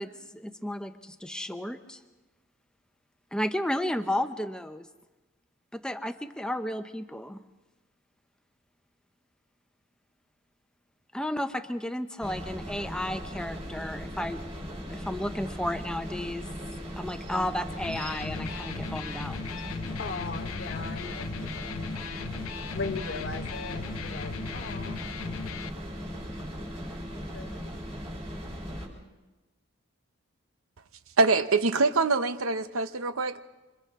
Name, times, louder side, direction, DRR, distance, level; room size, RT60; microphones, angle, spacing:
voice 1, 0.0-2.0 3.3-4.9 5.7-7.4 11.1-14.4 14.9-16.5 17.0-19.4, left 1 dB, 5° left, 8 dB, 0.7 m, -33 dB
sound 1, 12.2-28.9, equal, 30° right, 3.8 m, -38 dB
Electric guitar, 17.7-25.7, left 5 dB, 85° left, 0.6 m, -37 dB
voice 2, 20.0-21.9 22.7-25.0 27.3-27.7, left 3 dB, 50° left, 6 dB, 0.9 m, -38 dB
voice 3, 31.2-33.4, right 3 dB, 80° right, 11 dB, 0.9 m, -24 dB
28.0 x 26.0 x 3.7 m, 1.2 s
head